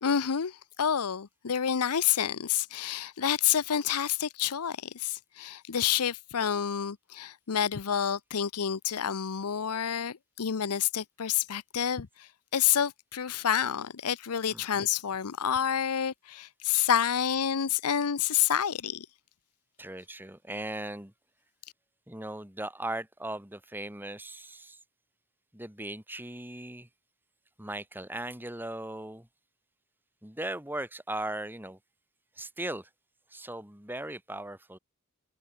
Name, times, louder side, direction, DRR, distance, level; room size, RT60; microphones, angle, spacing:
voice 1, 0.0-19.1, left 9 dB, 85° left, 0.7 m, -29 dB
voice 2, 14.5-14.9 19.8-21.1 22.1-24.8 25.5-26.9 27.6-29.3 30.2-31.8 32.4-32.9 33.3-34.8, right 1 dB, 10° right, 2.4 m, -38 dB
head